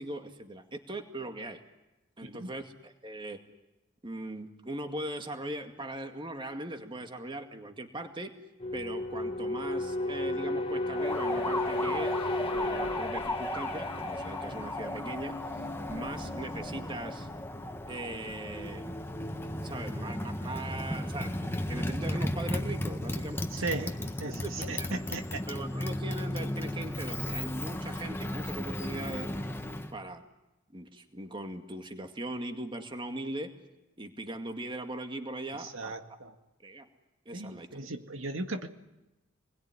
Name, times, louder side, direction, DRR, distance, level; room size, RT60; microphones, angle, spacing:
voice 1, 0.0-1.6 2.2-3.4 4.0-8.3 8.7-12.3 12.5-15.4 15.9-17.3 17.9-19.0 19.6-23.5 23.8-23.9 24.4-24.5 24.8-25.0 25.5-29.3 29.9-30.2 30.7-33.5 34.0-35.9 36.6-36.9 37.3-37.8, right 1 dB, 25° right, 5 dB, 2.2 m, -40 dB
sound 1, 8.6-23.2 23.5-23.8, left 1 dB, 25° left, 1.7 m, -37 dB
Motorcycle, 10.9-29.9, left 1 dB, 10° left, 1.5 m, -35 dB
voice 2, 23.5-23.9 24.2-25.4 35.6-36.3 37.3-38.7, right 2 dB, 80° right, 5 dB, 2.0 m, -37 dB
28.0 x 21.5 x 9.8 m, 0.99 s
head